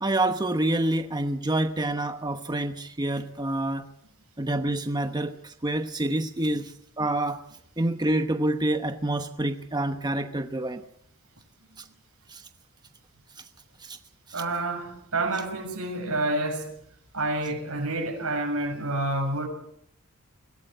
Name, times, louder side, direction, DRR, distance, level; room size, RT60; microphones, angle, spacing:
voice 1, 0.0-3.9 4.4-7.4 7.8-10.8 11.8-11.9 12.3-12.5 13.8-14.0 14.3-14.4, right 1 dB, 20° right, 1.0 m, -27 dB
voice 2, 14.3-16.7 17.1-19.5, right 2 dB, 85° right, 6.9 m, -28 dB
23.5 x 16.5 x 7.9 m
head